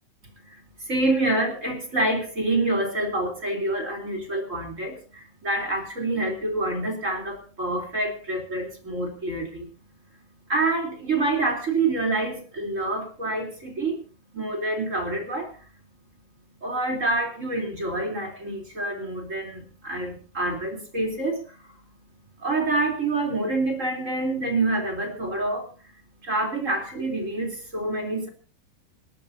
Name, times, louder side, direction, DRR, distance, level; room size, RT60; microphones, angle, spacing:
voice 1, 0.2-9.7 10.5-14.0 14.3-15.6 16.6-21.9 22.3-25.9 26.2-28.3, right 2 dB, 15° right, 2 dB, 3.3 m, -27 dB
29.0 x 12.5 x 2.8 m, 0.36 s
omnidirectional pair, 5.5 m